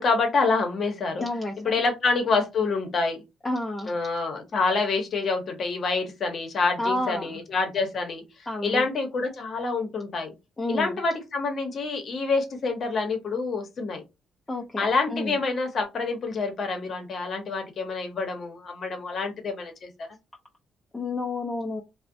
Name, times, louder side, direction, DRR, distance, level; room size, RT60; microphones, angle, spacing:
voice 1, 0.0-1.2 1.6-3.2 3.9-10.3 10.7-14.0 14.8-20.1, left 4 dB, 55° left, 0.8 m, -27 dB
voice 2, 1.2-1.8 3.4-3.9 6.8-7.4 8.5-8.9 10.6-11.0 14.5-15.4 20.9-21.8, left 2 dB, 20° left, 0.5 m, -30 dB
2.4 x 2.0 x 2.6 m
cardioid pair, 90°, 0 cm